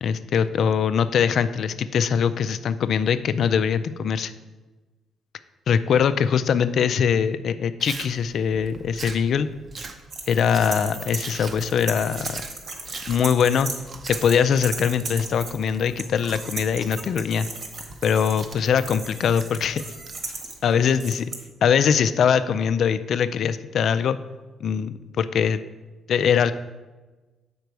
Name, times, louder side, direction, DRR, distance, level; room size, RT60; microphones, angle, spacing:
voice 1, 0.0-4.3 5.7-9.5 10.3-12.4 13.1-13.7 14.1-17.5 18.0-19.9 20.6-21.3 21.6-24.2 24.6-25.6 26.1-26.5, left 7 dB, 65° left, 13 dB, 0.4 m, -22 dB
Chewing mastication, 7.8-20.8, right 3 dB, 40° right, 0.7 m, -42 dB
sound 1, 10.1-13.8 14.1-21.3, right 3 dB, 60° right, 1.4 m, -36 dB
6.7 x 5.1 x 4.6 m, 1.2 s
cardioid pair, 90°, 0 cm